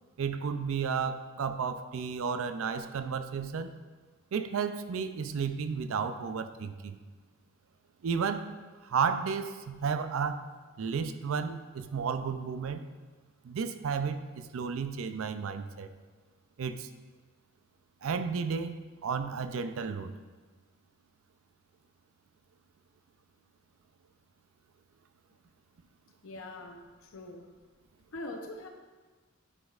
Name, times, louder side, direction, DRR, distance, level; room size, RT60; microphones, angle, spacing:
voice 1, 0.2-3.7 4.3-7.0 8.0-8.5 8.8-10.4 10.8-12.8 13.4-15.9 16.6-16.9 18.0-20.1, right 6 dB, 70° right, 10 dB, 0.4 m, -32 dB
voice 2, 26.2-27.5 28.1-28.7, left 2 dB, 70° left, 3 dB, 0.7 m, -43 dB
9.6 x 5.1 x 2.4 m, 1.4 s
head